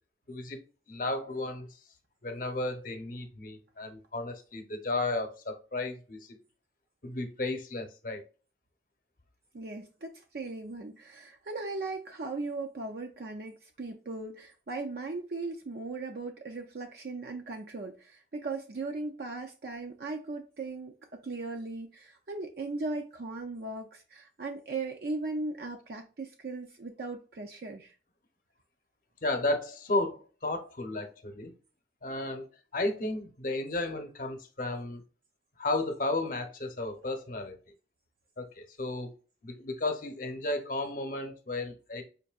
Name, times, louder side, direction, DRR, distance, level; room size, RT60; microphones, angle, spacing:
voice 1, 0.3-0.6 0.9-1.7 2.2-6.2 7.0-8.2 29.2-31.5 32.0-32.5 32.7-35.0 35.6-37.6 38.4-39.1 39.4-42.0, left 2 dB, 45° left, 0.8 m, -33 dB
voice 2, 9.5-20.9 21.2-27.9, right 3 dB, 55° right, 0.5 m, -38 dB
5.2 x 2.6 x 2.3 m
head